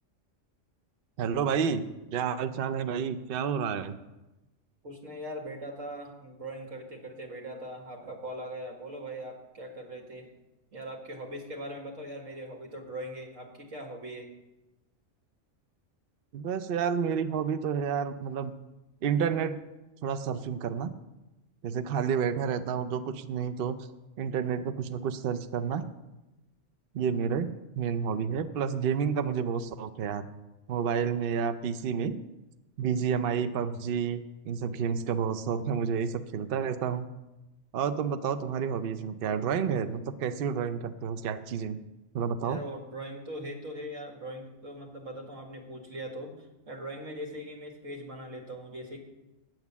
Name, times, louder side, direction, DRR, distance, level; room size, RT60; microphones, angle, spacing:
voice 1, 1.2-1.8 2.1-4.0 16.3-18.5 19.0-19.6 20.0-20.9 21.6-23.9 24.2-25.9 26.9-30.3 30.7-32.2 32.8-37.1 37.7-41.8 42.1-42.6, right 7 dB, 55° right, 10 dB, 0.7 m, -30 dB
voice 2, 4.8-10.3 10.7-14.3 42.4-46.4 46.7-49.0, right 1 dB, 85° right, 1 dB, 2.3 m, -40 dB
9.5 x 9.0 x 7.1 m, 1.0 s
omnidirectional pair, 1.3 m